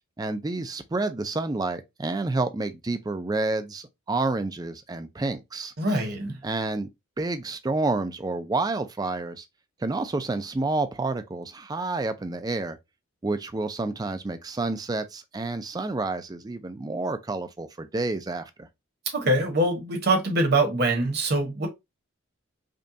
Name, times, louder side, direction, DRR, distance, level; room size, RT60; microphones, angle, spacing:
voice 1, 0.2-6.0 6.4-6.9 7.2-9.5 9.8-12.8 13.2-18.7, right 3 dB, 20° right, 0.3 m, -29 dB
voice 2, 5.8-6.4 19.1-21.7, right 2 dB, 50° right, 1.1 m, -24 dB
5.1 x 2.3 x 2.7 m
head